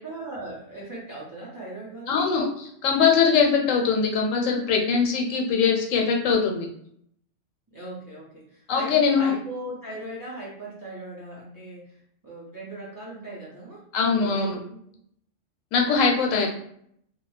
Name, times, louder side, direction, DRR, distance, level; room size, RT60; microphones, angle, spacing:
voice 1, 0.0-2.2 3.8-4.0 7.7-12.0 12.2-13.8 14.1-15.0, right 1 dB, 25° right, -6 dB, 0.4 m, -39 dB
voice 2, 2.1-6.7 8.7-9.3 13.9-14.6 15.7-16.5, left 5 dB, 85° left, 2 dB, 1.0 m, -22 dB
2.3 x 2.1 x 3.1 m, 0.68 s
omnidirectional pair, 1.3 m